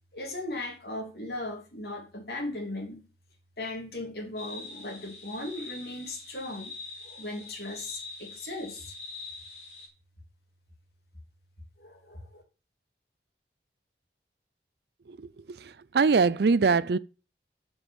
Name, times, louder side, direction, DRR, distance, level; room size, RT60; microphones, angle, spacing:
voice 1, 0.1-3.1 3.6-6.8 7.0-8.9 11.8-12.4, left 2 dB, 65° left, 3.1 m, -37 dB
sound 1, 4.4-9.9, left 3 dB, 40° left, 3.8 m, -44 dB
voice 2, 15.6-17.0, right 4 dB, 65° right, 0.5 m, -23 dB
7.7 x 7.1 x 7.2 m
head